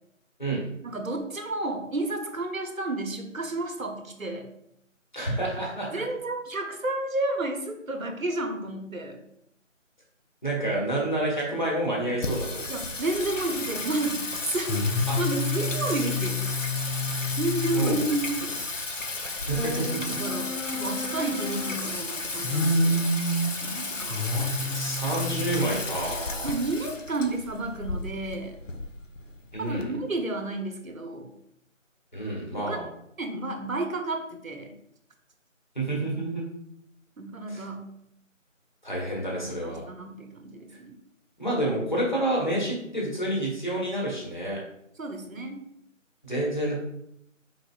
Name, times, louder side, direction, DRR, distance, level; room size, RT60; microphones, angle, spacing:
voice 1, 0.8-4.5 5.9-9.2 12.7-14.8 15.2-16.4 17.4-18.6 20.1-23.1 23.6-24.8 26.4-28.5 29.6-31.3 32.5-32.8 33.2-34.7 37.2-37.9 39.3-40.9 45.0-45.6, right 2 dB, 90° right, 4 dB, 1.0 m, -31 dB
voice 2, 5.1-6.0 10.4-12.6 15.1-15.2 15.8-16.1 17.7-18.0 19.4-20.2 20.7-20.9 24.3-26.5 29.5-29.9 32.1-32.9 35.7-36.4 37.5-37.6 38.8-39.8 41.4-44.6 46.2-46.7, right 1 dB, 35° left, -4 dB, 1.3 m, -29 dB
Singing, 12.2-29.8, left 2 dB, 70° left, 0.8 m, -30 dB
4.2 x 4.2 x 2.3 m, 0.75 s
figure-of-eight pair, 175°, 40 cm